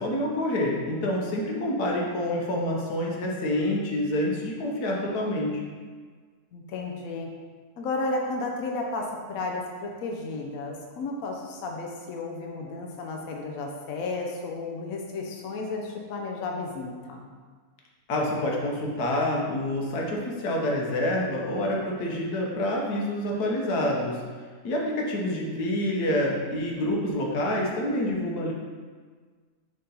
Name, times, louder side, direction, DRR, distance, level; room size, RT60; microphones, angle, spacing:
voice 1, 0.0-5.6 18.1-24.2 24.6-28.5, left 1 dB, 85° left, -2 dB, 1.5 m, -27 dB
voice 2, 6.5-7.3 7.8-17.3, left 3 dB, 65° left, 1 dB, 1.0 m, -33 dB
6.8 x 3.8 x 3.8 m, 1.5 s
omnidirectional pair, 1.6 m